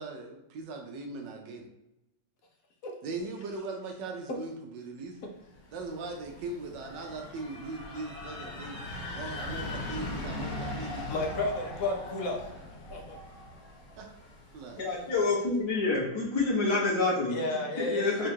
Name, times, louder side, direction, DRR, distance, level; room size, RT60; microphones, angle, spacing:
voice 1, 0.0-1.7 3.0-5.2 5.7-8.8 9.2-11.1 14.0-14.1 14.5-15.1, right 3 dB, 75° right, 2 dB, 1.3 m, -39 dB
sound 1, 5.5-15.3, left 2 dB, 45° left, 1.8 m, -40 dB
voice 2, 11.1-12.4 12.9-13.2 17.3-18.3, left 2 dB, 60° left, 1 dB, 1.0 m, -32 dB
voice 3, 14.8-17.4 17.8-18.3, left 3 dB, 20° left, -5 dB, 0.7 m, -27 dB
3.7 x 2.5 x 4.4 m, 0.87 s
omnidirectional pair, 2.0 m